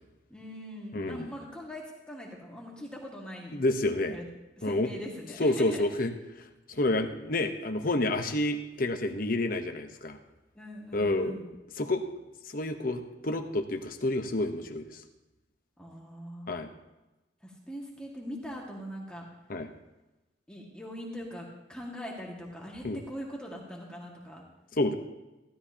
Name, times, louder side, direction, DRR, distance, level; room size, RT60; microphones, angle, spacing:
voice 1, 0.3-3.6 4.1-4.3 4.6-5.9 10.5-11.5 15.8-16.6 17.4-19.3 20.5-24.4, equal, 5° left, -3 dB, 1.9 m, -41 dB
voice 2, 0.9-1.3 3.5-4.2 4.6-4.9 5.4-6.1 6.7-10.2 10.9-11.3 11.8-12.0 12.5-15.0 16.5-16.7 19.5-19.7 22.8-23.0 24.8-24.9, left 2 dB, 50° left, 6 dB, 0.9 m, -29 dB
16.0 x 12.5 x 2.9 m, 1.0 s
head